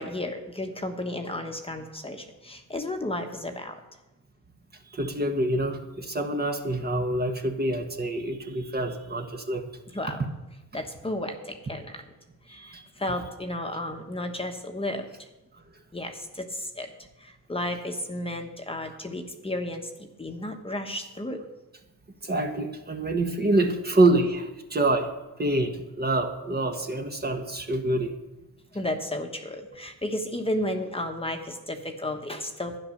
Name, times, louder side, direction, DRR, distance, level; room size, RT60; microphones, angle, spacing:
voice 1, 0.0-3.8 9.9-10.2 10.7-12.0 12.4-15.3 15.9-16.9 17.2-21.4 28.7-32.8, left 1 dB, 15° left, 4 dB, 1.2 m, -33 dB
voice 2, 4.8-9.7 12.5-12.8 18.8-18.9 22.2-25.1 25.4-28.1, right 2 dB, 25° right, 4 dB, 1.3 m, -26 dB
12.0 x 9.8 x 6.6 m, 1.0 s
cardioid pair, 105°, 38 cm